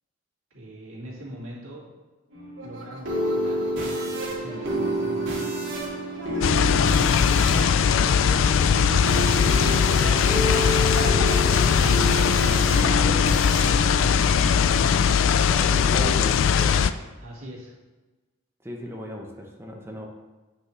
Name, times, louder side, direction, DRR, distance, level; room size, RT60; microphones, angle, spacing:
voice 1, 0.5-1.8 2.6-3.7 4.0-5.5 6.8-8.9 9.2-11.0 12.8-14.9 17.2-17.7, right 1 dB, 85° right, -6 dB, 2.3 m, -40 dB
sound 1, 2.3-15.0, right 1 dB, 65° right, 2.2 m, -29 dB
sound 2, 6.4-16.9, left 7 dB, 65° left, 0.3 m, -20 dB
voice 2, 15.5-16.8 18.6-20.1, equal, 10° right, 0 dB, 0.7 m, -35 dB
8.6 x 5.3 x 3.2 m, 1.2 s
head